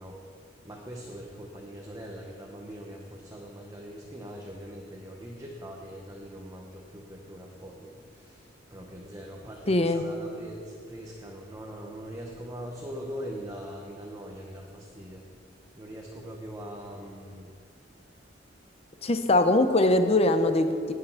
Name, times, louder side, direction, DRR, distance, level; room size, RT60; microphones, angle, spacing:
voice 1, 0.0-15.3 15.8-17.5, equal, 15° right, -1 dB, 1.0 m, -42 dB
voice 2, 9.7-10.0 19.0-20.9, left 2 dB, 30° left, 8 dB, 0.7 m, -22 dB
18.5 x 6.8 x 5.7 m, 2.3 s
head